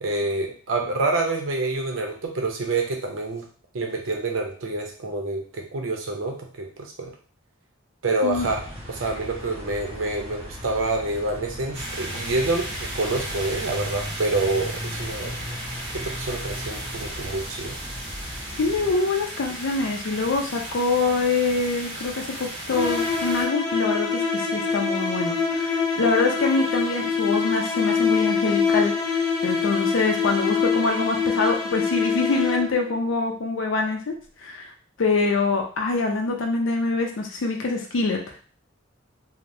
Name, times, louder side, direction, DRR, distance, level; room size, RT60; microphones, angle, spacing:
voice 1, 0.0-3.4 3.7-7.1 8.0-8.6 8.9-15.4 15.9-17.8, right 2 dB, 85° right, 2 dB, 0.7 m, -27 dB
sound 1, 8.3-18.9, equal, 35° right, 0.9 m, -37 dB
sound 2, 11.7-23.5, right 1 dB, 60° right, 1.2 m, -35 dB
voice 2, 18.5-34.7 35.0-38.4, left 3 dB, 75° left, 2 dB, 0.5 m, -25 dB
sound 3, 22.7-32.9, left 5 dB, 20° left, 0.6 m, -24 dB
3.2 x 2.1 x 2.6 m, 0.42 s
head